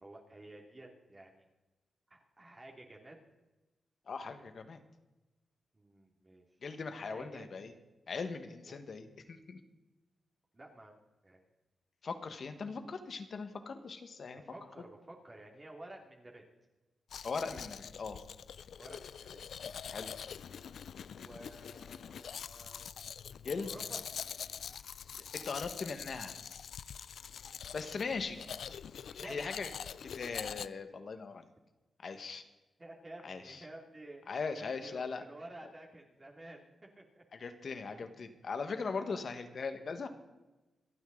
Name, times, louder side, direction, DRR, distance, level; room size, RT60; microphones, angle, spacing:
voice 1, 0.0-1.5 2.1-3.2 5.7-6.5 7.0-7.5 8.6-8.8 10.5-10.9 11.2-11.4 14.4-16.5 18.8-19.5 21.2-22.9 23.6-24.0 29.2-29.4 32.8-34.2 34.5-37.2 37.9-38.1 38.9-39.2, right 1 dB, 25° right, -1 dB, 2.6 m, -52 dB
voice 2, 4.1-4.8 6.6-7.7 8.1-9.6 12.0-14.4 17.2-18.2 19.9-20.2 23.4-23.7 25.3-26.3 27.7-28.4 29.2-29.7 30.0-31.4 32.0-32.4 33.2-33.6 34.3-35.2 37.3-40.1, left 4 dB, 60° left, 8 dB, 1.6 m, -39 dB
Domestic sounds home sounds, 17.1-30.7, left 7 dB, 80° left, 0.4 m, -44 dB
27.5 x 9.3 x 4.0 m, 1.1 s
cardioid pair, 95°, 0 cm